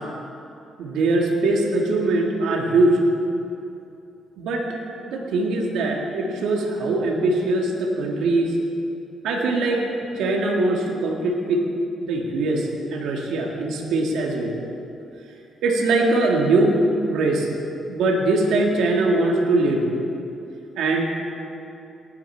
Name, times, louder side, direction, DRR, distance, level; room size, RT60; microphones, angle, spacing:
voice 1, 0.8-3.0 4.4-4.7 5.1-8.5 9.2-9.9 10.2-11.6 12.0-14.5 15.6-16.8 17.1-17.5 17.9-19.9 20.8-21.0, right 2 dB, 85° right, 0 dB, 1.9 m, -21 dB
18.5 x 9.8 x 4.5 m, 2.7 s
cardioid pair, 90°, 0 cm